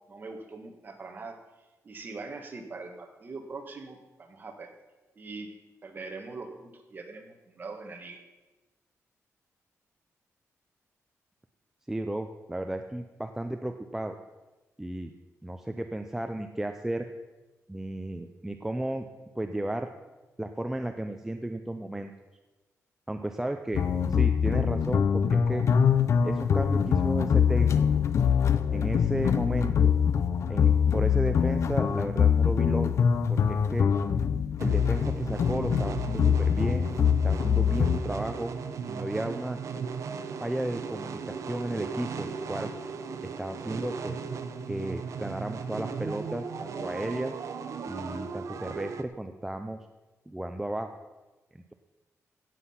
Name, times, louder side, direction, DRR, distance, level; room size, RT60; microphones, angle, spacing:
voice 1, 0.1-1.4 1.8-4.7 5.1-5.5 5.8-8.2, right 3 dB, 35° right, 4 dB, 1.6 m, -42 dB
voice 2, 11.9-14.2 14.8-15.1 15.4-17.1 17.7-19.1 19.4-19.9 20.4-22.1 23.1-23.8 24.1-25.6 26.2-27.8 28.7-30.0 30.5-32.9 33.3-33.9 34.6-36.9 37.2-38.5 38.9-39.6 40.4-42.7 43.4-44.2 44.7-47.3 47.9-49.8 50.3-51.0, right 1 dB, 5° right, 6 dB, 0.5 m, -34 dB
sound 1, 23.7-38.0, left 7 dB, 60° left, 0.6 m, -24 dB
sound 2, 34.6-49.0, right 5 dB, 70° right, 0.9 m, -37 dB
16.5 x 7.7 x 5.8 m, 1.2 s
wide cardioid pair, 165°, 6 cm